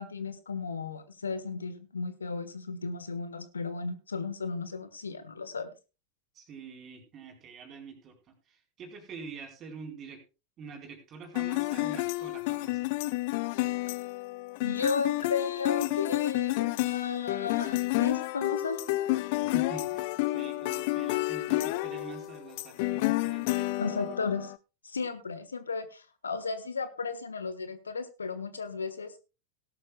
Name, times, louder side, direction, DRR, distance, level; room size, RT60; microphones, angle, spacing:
voice 1, 0.0-5.7 14.6-18.8 23.8-24.5 24.8-29.2, left 4 dB, 75° left, 12 dB, 1.3 m, -34 dB
voice 2, 6.3-8.1 8.5-10.2 10.6-12.9 19.5-24.2, right 5 dB, 30° right, 2 dB, 4.1 m, -46 dB
sound 1, 11.4-24.6, left 19 dB, 50° left, 0.6 m, -30 dB
18.0 x 12.0 x 2.3 m, 0.30 s
figure-of-eight pair, 90°, 0 cm